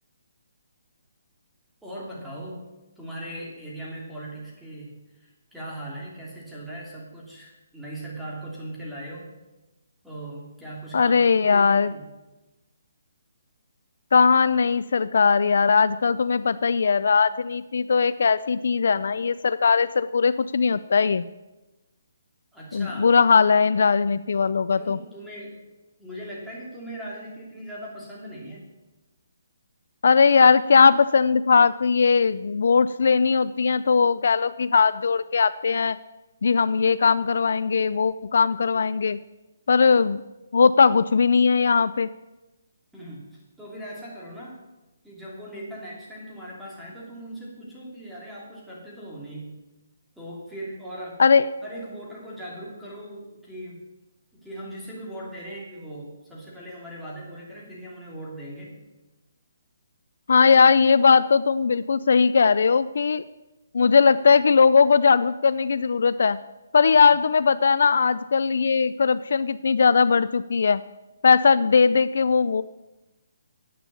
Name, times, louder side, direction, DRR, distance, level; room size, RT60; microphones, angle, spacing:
voice 1, 1.8-2.6 3.0-9.3 10.0-12.0 22.5-23.2 24.8-25.6 26.0-28.7 42.9-44.6 45.0-49.6 50.2-51.2 51.6-53.8 54.3-58.8, right 1 dB, ahead, -6 dB, 3.0 m, -39 dB
voice 2, 10.9-11.9 14.1-21.3 22.7-25.0 30.0-36.0 36.4-39.2 39.7-40.2 40.5-42.1 51.2-51.5 60.3-63.2 63.7-66.4 66.7-70.8 71.2-72.6, left 5 dB, 65° left, 15 dB, 0.4 m, -19 dB
10.0 x 8.7 x 6.9 m, 1.1 s
hypercardioid pair, 160°, 0 cm